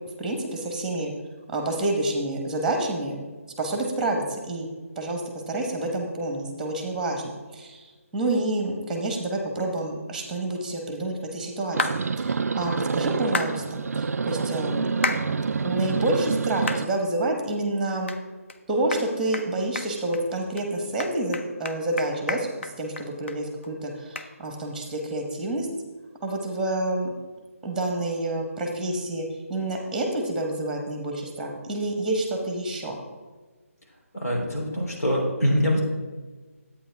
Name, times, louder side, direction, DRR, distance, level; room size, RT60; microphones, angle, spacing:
voice 1, 0.2-1.1 1.5-3.2 3.6-4.7 5.0-5.2 5.5-11.8 12.1-18.1 18.7-25.7 26.2-27.1 27.6-33.0, right 2 dB, 5° right, 2 dB, 1.1 m, -28 dB
sound 1, 11.7-16.9, right 5 dB, 80° right, 0.4 m, -27 dB
sound 2, 11.8-12.0 13.3-13.5 15.0-15.2 15.8-15.9 16.7-16.8 17.3-17.4 18.1-18.2 18.5-18.6 18.9-19.1 19.3-19.5 19.8-20.2 20.6-20.7 21.0-23.4 23.6-23.7 24.2-24.3, left 4 dB, 50° left, 0.7 m, -29 dB
voice 2, 34.1-35.8, equal, 85° left, -1 dB, 3.5 m, -24 dB
11.0 x 8.6 x 3.5 m, 1.3 s
figure-of-eight pair, 160°, 8 cm